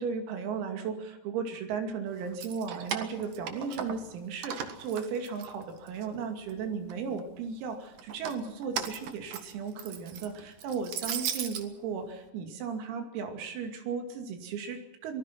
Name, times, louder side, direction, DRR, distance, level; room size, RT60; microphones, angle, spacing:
voice 1, 0.0-15.2, right 6 dB, 85° right, 5 dB, 5.2 m, -35 dB
Keys jangling, 2.2-4.1 4.4-6.1 6.5-7.2 8.0-11.6, right 8 dB, 60° right, 2.4 m, -37 dB
26.5 x 19.5 x 6.0 m, 0.93 s
omnidirectional pair, 6.0 m